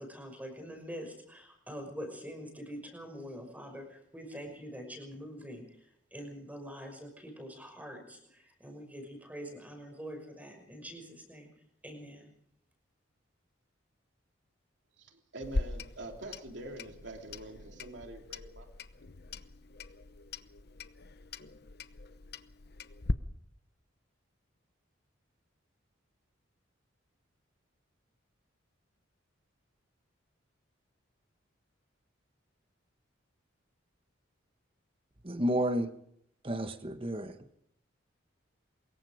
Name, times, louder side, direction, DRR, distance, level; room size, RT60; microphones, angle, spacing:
voice 1, 0.0-11.5 11.8-12.3, equal, 10° right, 5.7 m, -45 dB
voice 2, 15.0-18.7, right 1 dB, 60° right, 3.1 m, -45 dB
Clock, 15.4-23.1, left 2 dB, 50° left, 0.9 m, -40 dB
voice 3, 35.2-35.9 36.4-37.4, equal, 25° right, 1.3 m, -31 dB
24.0 x 22.0 x 5.1 m
head